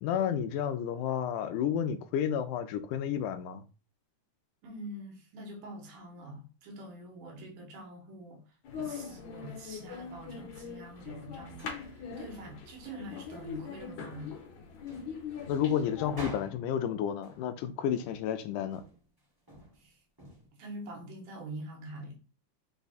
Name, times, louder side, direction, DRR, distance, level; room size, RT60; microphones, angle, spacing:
voice 1, 0.0-3.6 15.5-18.8, left 9 dB, 85° left, 2.1 m, -31 dB
voice 2, 4.6-8.4 8.8-14.3 15.4-15.6 19.8-20.0 20.5-22.2, right 1 dB, 80° right, 2.7 m, -45 dB
sound 1, 8.6-16.2, left 6 dB, 70° left, 2.2 m, -42 dB
sound 2, 11.6-12.3 13.0-13.7 14.0-14.4 14.9-16.9 17.2-17.6 18.0-18.4 18.7-20.5, equal, 15° right, 0.7 m, -50 dB
5.7 x 2.3 x 4.0 m
omnidirectional pair, 3.6 m